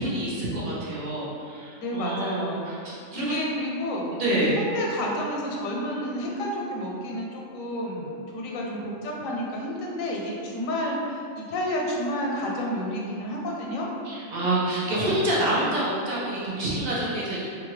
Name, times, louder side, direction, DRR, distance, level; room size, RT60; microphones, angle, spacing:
voice 1, 0.0-3.4 4.1-4.6 14.0-17.5, right 1 dB, 50° right, -7 dB, 0.9 m, -27 dB
voice 2, 1.8-2.7 3.1-4.1 4.6-13.9, equal, 85° left, -2 dB, 1.0 m, -30 dB
2.8 x 2.4 x 3.1 m, 2.4 s
omnidirectional pair, 1.3 m